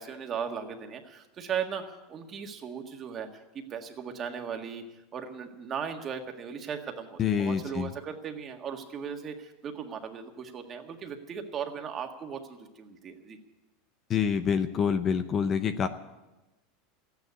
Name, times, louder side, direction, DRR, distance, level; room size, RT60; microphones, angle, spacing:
voice 1, 0.0-3.3 3.5-4.8 5.1-13.4, right 7 dB, 30° right, 4 dB, 1.7 m, -37 dB
voice 2, 7.2-7.9 14.1-15.9, left 7 dB, 30° left, 10 dB, 0.7 m, -26 dB
14.5 x 9.5 x 9.7 m, 1.0 s
supercardioid pair, 145°, 0 cm